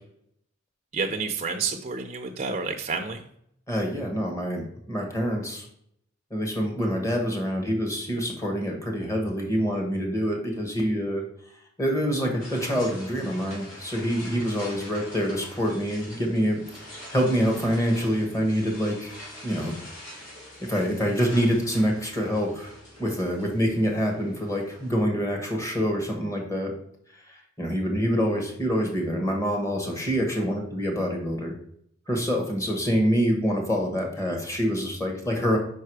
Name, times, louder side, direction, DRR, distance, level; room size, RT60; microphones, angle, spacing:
voice 1, 0.9-3.2, right 4 dB, 35° right, 3 dB, 0.5 m, -29 dB
voice 2, 3.7-5.7 6.3-11.2 11.8-16.6 16.9-19.2 19.4-19.7 20.6-22.7 23.0-26.7 27.6-31.5 32.1-35.6, equal, 15° left, 2 dB, 1.3 m, -26 dB
sound 1, 12.4-24.9, left 1 dB, 85° left, 2.9 m, -45 dB
5.3 x 4.7 x 4.7 m, 0.70 s
head